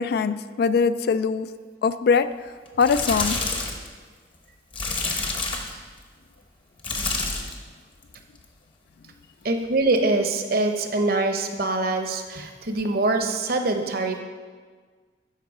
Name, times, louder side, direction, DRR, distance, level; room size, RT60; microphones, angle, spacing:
voice 1, 0.0-1.5 1.8-2.3 2.8-3.4, left 5 dB, 60° left, 13 dB, 0.3 m, -21 dB
sound 1, 2.7-3.9 4.7-5.8 6.8-7.6 8.0-8.4 9.9-10.0, left 3 dB, 30° left, 0.9 m, -28 dB
voice 2, 9.4-14.2, right 2 dB, 55° right, 5 dB, 0.8 m, -24 dB
12.0 x 4.7 x 4.8 m, 1.6 s
head